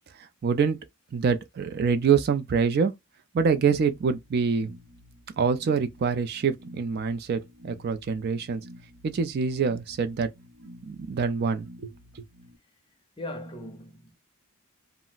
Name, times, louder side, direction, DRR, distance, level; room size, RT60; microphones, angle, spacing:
voice 1, 0.4-0.8 1.1-2.9 3.3-4.7 5.4-8.6 9.0-10.3 10.9-11.9, right 5 dB, 45° right, 0.3 m, -25 dB
sound 1, 3.5-12.6, equal, 70° right, 0.8 m, -50 dB
voice 2, 13.2-14.2, left 1 dB, 20° left, 0.5 m, -38 dB
2.4 x 2.0 x 3.9 m
head